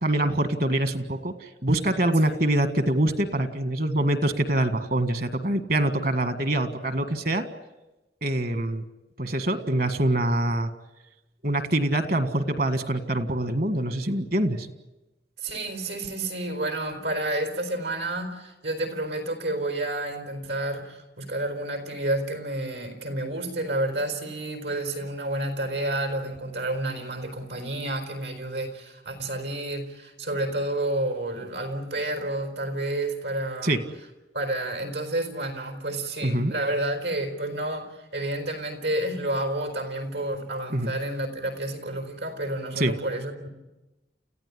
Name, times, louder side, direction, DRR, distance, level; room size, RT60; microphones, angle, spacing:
voice 1, 0.0-7.4 8.2-8.8 9.2-10.7 11.4-14.7 33.6-33.8 36.2-36.5 40.7-40.9 42.8-42.9, right 1 dB, 55° right, 9 dB, 1.8 m, -25 dB
voice 2, 15.4-33.8 34.3-43.5, right 1 dB, 85° right, 6 dB, 4.5 m, -30 dB
29.5 x 15.5 x 9.9 m, 1.0 s
head